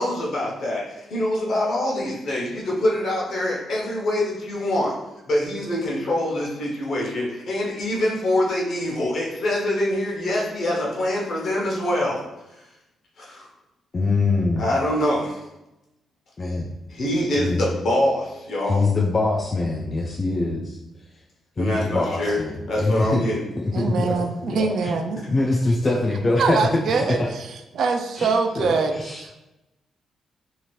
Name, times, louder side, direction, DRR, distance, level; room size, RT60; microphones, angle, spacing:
voice 1, 0.0-4.9 5.3-12.2 12.5-12.6 13.2-13.5 14.6-15.4 16.9-18.8 21.6-23.4, left 1 dB, 60° left, -4 dB, 0.9 m, -24 dB
voice 2, 13.9-14.7 16.4-16.7 17.4-17.6 18.7-20.8 21.6-23.2 23.6-24.2 24.5-25.0 25.3-26.8 27.1-27.3 28.2-28.3 28.6-29.2, left 2 dB, 25° left, -2 dB, 0.3 m, -23 dB
voice 3, 23.7-25.2 26.4-27.5 27.7-28.9 29.2-29.4, right 4 dB, 60° right, 5 dB, 0.3 m, -23 dB
2.8 x 2.4 x 3.0 m, 0.95 s
cardioid pair, 135°, 0 cm